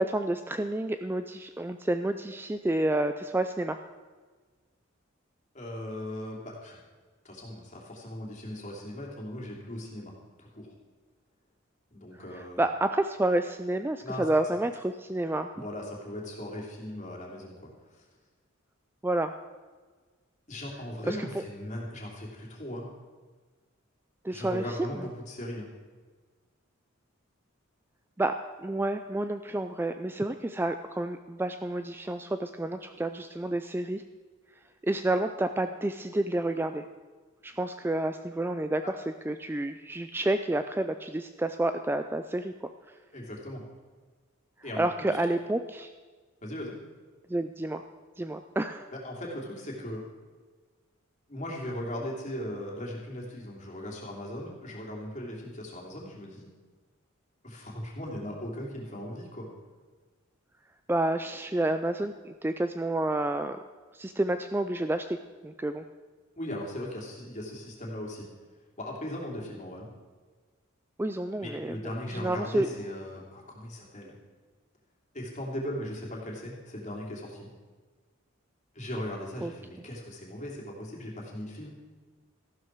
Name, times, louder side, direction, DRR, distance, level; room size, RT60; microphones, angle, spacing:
voice 1, 0.0-3.8 12.3-15.5 19.0-19.3 21.1-21.4 24.2-24.6 24.9-25.0 28.2-34.0 34.8-36.8 37.4-39.0 39.3-42.5 44.8-45.9 47.3-47.8 48.2-48.8 60.9-63.6 63.9-65.2 65.4-65.8 71.0-71.8 72.1-72.7 79.4-79.5, right 1 dB, 10° right, 8 dB, 0.3 m, -29 dB
voice 2, 5.5-6.8 7.2-10.1 10.4-10.7 11.9-12.7 14.0-14.3 15.5-18.0 20.5-22.9 24.3-25.7 43.1-43.6 44.6-45.2 46.4-46.8 48.9-50.0 51.3-56.5 57.4-59.5 66.4-68.2 68.8-69.9 71.4-74.1 75.1-77.5 78.7-81.7, left 1 dB, 35° left, -2 dB, 2.9 m, -38 dB
14.0 x 12.0 x 4.6 m, 1.4 s
head